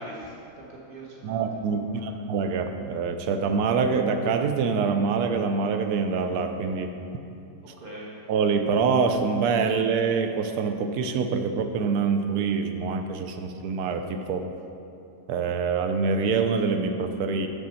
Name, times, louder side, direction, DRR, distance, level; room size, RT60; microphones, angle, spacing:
voice 1, 0.0-2.1 7.6-8.1, right 1 dB, 35° right, -4 dB, 1.4 m, -42 dB
voice 2, 1.2-6.9 8.3-14.5 15.3-17.5, right 5 dB, 75° right, 7 dB, 1.1 m, -25 dB
7.0 x 6.7 x 4.3 m, 2.6 s
omnidirectional pair, 1.7 m